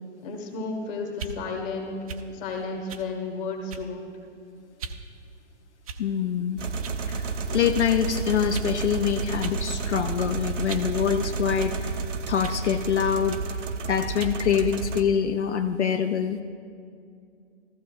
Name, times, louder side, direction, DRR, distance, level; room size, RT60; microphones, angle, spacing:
voice 1, 0.2-2.0 2.3-4.2, left 3 dB, 20° left, 1 dB, 1.3 m, -33 dB
sound 1, 1.1-1.4 2.1-2.3 2.9-3.1 3.7-4.0 4.8-5.0 5.8-6.2 6.8-7.0 7.7-7.9 8.5-8.7 9.4-9.6 10.0-11.0 11.6-11.8 12.4-12.6 13.3-13.5 14.2-14.4, right 5 dB, 30° right, 0.4 m, -38 dB
voice 2, 6.0-6.6 7.1-12.0 12.3-13.4 13.9-16.4, left 8 dB, 70° left, 7 dB, 0.6 m, -25 dB
sound 2, 6.6-15.0, right 4 dB, 85° right, 0.7 m, -31 dB
14.5 x 14.0 x 2.3 m, 2.4 s
hypercardioid pair, 135°, 36 cm